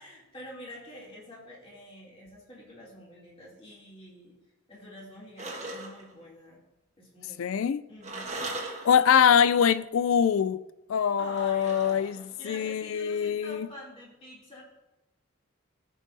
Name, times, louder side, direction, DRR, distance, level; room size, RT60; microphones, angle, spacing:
voice 1, 0.0-4.3 4.7-6.6 7.0-7.4 7.9-8.4 11.2-14.6, left 1 dB, 25° left, 2.8 m, -46 dB
sound 1, 5.4-6.1 8.0-9.3 11.3-12.4, right 2 dB, 30° right, 1.4 m, -39 dB
voice 2, 7.4-7.8 8.8-10.6 10.9-12.2 12.4-13.7, left 7 dB, 70° left, 0.4 m, -23 dB
15.0 x 6.4 x 2.7 m
head